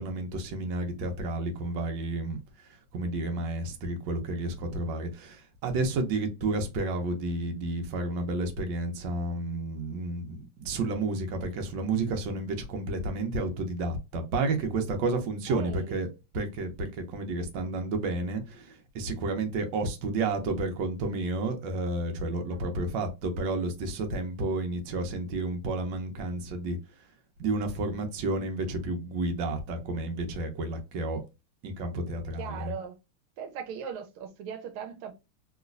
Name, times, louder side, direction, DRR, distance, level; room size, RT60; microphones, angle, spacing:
voice 1, 0.0-2.4 2.9-16.1 16.3-26.8 27.4-31.2 31.6-32.7, right 2 dB, 70° right, 1.4 m, -31 dB
voice 2, 15.5-16.0 32.4-32.9 33.4-35.1, right 7 dB, 85° right, 1.5 m, -38 dB
3.1 x 3.0 x 2.4 m
omnidirectional pair, 2.3 m